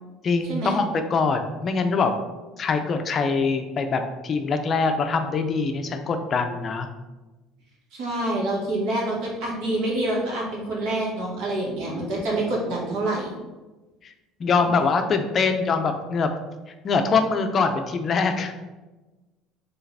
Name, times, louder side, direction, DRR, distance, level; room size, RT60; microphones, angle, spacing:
voice 1, 0.2-2.1 2.6-6.9 14.0-14.1 14.4-16.3 16.8-18.5, left 4 dB, 35° left, 6 dB, 0.4 m, -23 dB
voice 2, 7.9-13.3 14.6-14.9, right 1 dB, 70° right, -3 dB, 1.5 m, -27 dB
4.7 x 3.3 x 3.3 m, 1.2 s
cardioid pair, 140°, 0 cm